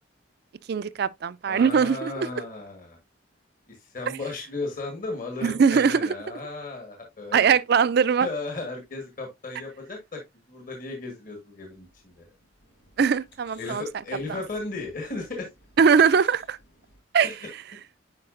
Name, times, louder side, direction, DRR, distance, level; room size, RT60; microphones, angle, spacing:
voice 1, 0.7-2.3 5.4-6.1 7.3-8.3 13.0-13.8 15.8-16.6 17.1-17.3, right 6 dB, 55° right, 0.4 m, -21 dB
voice 2, 1.5-3.0 3.7-7.5 8.2-10.2 10.5-12.3 13.6-15.5 17.2-17.4, left 3 dB, 45° left, 1.5 m, -35 dB
sound 1, 11.7-17.0, left 3 dB, 75° left, 5.0 m, -54 dB
9.8 x 4.6 x 2.5 m
head